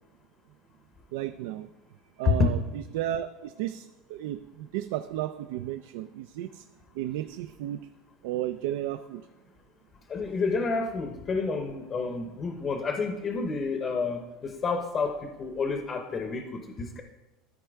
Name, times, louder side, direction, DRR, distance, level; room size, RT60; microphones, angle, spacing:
voice 1, 1.1-1.7 2.2-6.6 6.9-7.9 8.2-9.3, right 13 dB, 75° right, 10 dB, 0.3 m, -33 dB
voice 2, 2.2-2.5 10.1-17.0, left 4 dB, 25° left, 5 dB, 0.7 m, -29 dB
13.0 x 4.5 x 3.5 m, 1.0 s
supercardioid pair, 155°, 0 cm